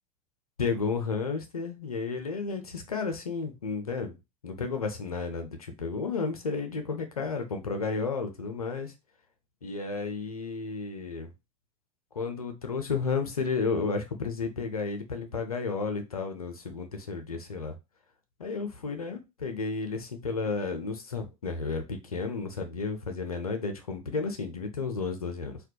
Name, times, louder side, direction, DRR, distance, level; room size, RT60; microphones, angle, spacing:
voice 1, 0.6-4.1 4.4-8.9 9.6-11.3 12.1-17.7 18.4-25.6, left 4 dB, 90° left, 6 dB, 0.5 m, -32 dB
2.2 x 2.1 x 2.7 m, 0.25 s
figure-of-eight pair, 75°, 18 cm